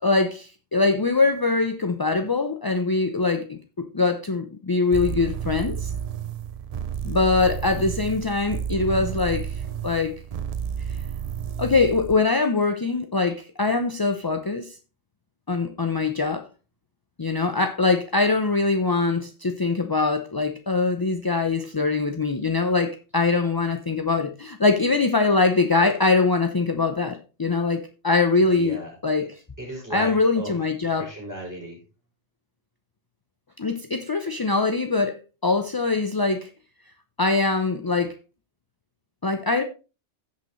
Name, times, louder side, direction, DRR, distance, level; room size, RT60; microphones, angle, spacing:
voice 1, 0.0-5.9 7.0-10.1 10.9-11.0 11.6-14.8 15.5-16.5 17.2-28.8 29.0-29.3 29.9-31.1 33.6-36.5 37.2-38.1 39.2-39.6, left 3 dB, 30° left, 0.4 m, -23 dB
sound 1, 4.9-12.2, right 8 dB, 60° right, 0.4 m, -31 dB
voice 2, 28.5-29.3 29.6-30.6 31.0-31.8, equal, 15° right, 5.6 m, -36 dB
16.0 x 5.7 x 3.1 m
omnidirectional pair, 1.3 m